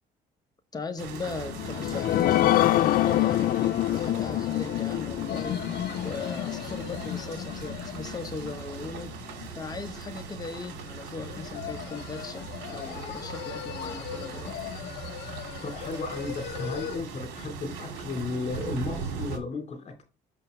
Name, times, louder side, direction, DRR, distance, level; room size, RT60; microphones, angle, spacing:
voice 1, 0.7-9.1 9.5-14.6, left 4 dB, 20° left, 1.1 m, -38 dB
sound 1, 1.0-19.4, right 5 dB, 90° right, 2.1 m, -40 dB
sound 2, 1.4-8.5 9.0-9.1 9.4-9.5, left 14 dB, 55° left, 0.4 m, -26 dB
sound 3, 5.3-9.6 11.0-17.0, left 10 dB, 80° left, 0.9 m, -38 dB
voice 2, 15.6-20.0, left 3 dB, 40° left, 3.0 m, -34 dB
6.9 x 5.5 x 3.2 m
cardioid pair, 110°, 17 cm